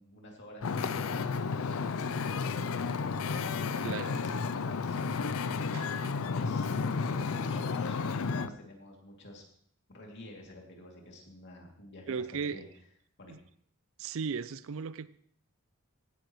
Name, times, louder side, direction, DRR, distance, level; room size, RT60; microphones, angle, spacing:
voice 1, 0.0-3.1 3.5-5.1 5.9-9.4 9.9-12.7 13.2-13.3, left 1 dB, 55° left, 0 dB, 2.7 m, -50 dB
Wind / Ocean, 0.6-8.5, left 5 dB, 70° left, 0.5 m, -32 dB
voice 2, 5.7-6.1 12.1-12.6 13.3-13.4 14.0-15.1, right 6 dB, 65° right, 17 dB, 0.4 m, -36 dB
16.5 x 10.0 x 3.1 m, 0.64 s
head